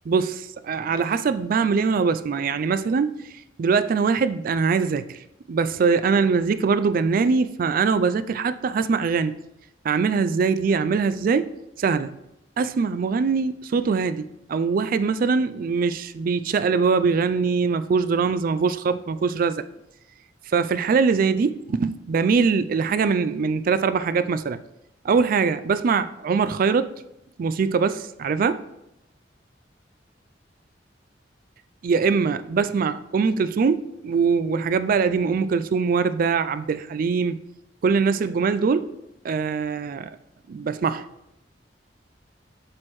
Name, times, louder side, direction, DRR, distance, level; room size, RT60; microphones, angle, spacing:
voice 1, 0.1-3.1 3.6-5.2 5.5-9.4 9.8-12.2 12.6-19.6 20.5-24.6 25.0-26.9 27.4-28.6 31.8-37.4 37.8-38.9 39.2-40.1 40.5-41.1, right 5 dB, 50° right, 0.3 m, -22 dB
7.5 x 6.1 x 3.1 m
head